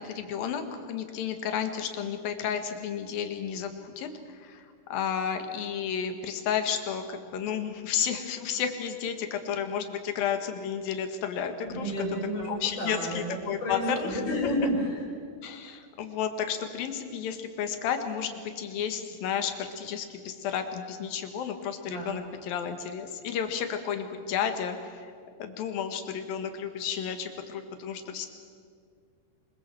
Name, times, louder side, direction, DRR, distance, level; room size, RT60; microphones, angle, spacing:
voice 1, 0.0-11.9 12.4-14.2 15.4-25.1 25.4-28.3, left 8 dB, 65° left, 7 dB, 3.2 m, -32 dB
voice 2, 11.6-15.0 21.8-22.2, equal, 25° left, -5 dB, 5.5 m, -31 dB
25.0 x 22.0 x 7.7 m, 2.1 s
omnidirectional pair, 4.9 m